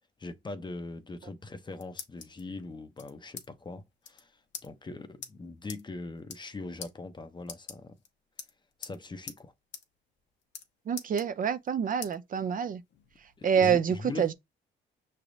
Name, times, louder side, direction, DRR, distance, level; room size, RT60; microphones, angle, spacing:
voice 1, 0.2-4.4 4.6-7.9 8.8-9.5 13.4-14.3, left 3 dB, 25° left, 0.6 m, -41 dB
sound 1, 1.4-2.4 3.0-3.5 3.7-3.8 4.0-4.2 4.5-4.7 5.2-5.3 5.7-5.8 6.2-6.5 6.8-6.9 7.4-8.1 8.4-9.0 9.3-9.4 9.7-9.8 10.1-10.7 11.0-11.7 12.0-12.1 12.6-13.5, left 7 dB, 65° left, 0.9 m, -43 dB
voice 2, 10.9-12.8 13.4-14.3, right 7 dB, 45° right, 0.5 m, -27 dB
5.8 x 3.2 x 2.6 m
cardioid pair, 90°, 20 cm